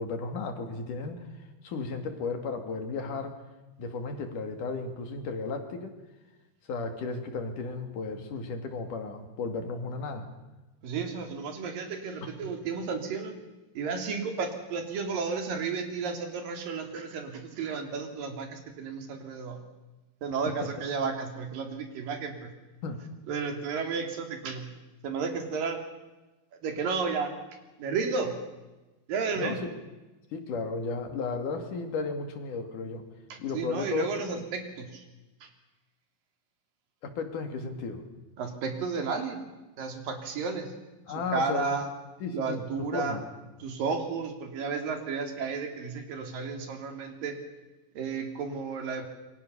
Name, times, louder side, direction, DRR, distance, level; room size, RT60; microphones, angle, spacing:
voice 1, 0.0-3.4 3.8-5.9 6.7-10.3 12.2-12.3 22.8-23.0 29.4-29.7 30.3-33.1 33.4-34.0 34.3-34.4 37.0-38.0 41.1-41.8 42.2-43.2, left 4 dB, 70° left, 6 dB, 3.9 m, -34 dB
voice 2, 10.8-13.4 13.8-19.6 20.2-22.5 23.3-24.7 25.0-25.8 26.6-27.3 27.8-28.4 29.1-29.6 33.3-35.0 35.4-35.5 38.4-39.4 39.8-40.7 41.3-41.9 42.3-43.2 43.6-47.4 48.0-49.1, right 5 dB, 80° right, 5 dB, 4.5 m, -32 dB
27.0 x 23.5 x 6.9 m, 1.1 s
omnidirectional pair, 3.9 m